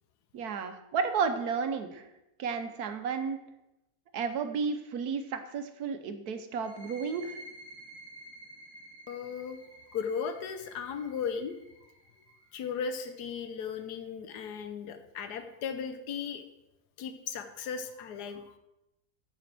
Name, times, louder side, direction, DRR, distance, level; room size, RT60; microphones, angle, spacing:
voice 1, 0.3-2.1 2.4-3.4 4.1-7.4, right 5 dB, 75° right, 8 dB, 1.4 m, -32 dB
sound 1, 6.5-13.9, right 1 dB, 40° right, 1.9 m, -52 dB
voice 2, 9.1-9.6 9.9-11.6 12.5-16.4 17.0-18.5, left 6 dB, 85° left, 9 dB, 1.4 m, -36 dB
9.1 x 7.9 x 6.0 m, 0.91 s
omnidirectional pair, 1.7 m